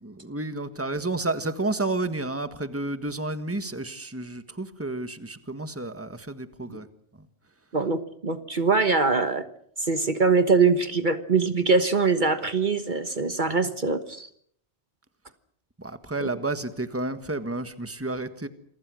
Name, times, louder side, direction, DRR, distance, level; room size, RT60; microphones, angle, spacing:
voice 1, 0.0-6.9 7.2-7.3 15.8-18.5, right 2 dB, 15° right, 10 dB, 1.6 m, -31 dB
voice 2, 7.7-9.4 9.8-14.3, right 4 dB, 50° right, 10 dB, 1.5 m, -23 dB
28.5 x 24.0 x 6.4 m, 0.65 s
omnidirectional pair, 1.0 m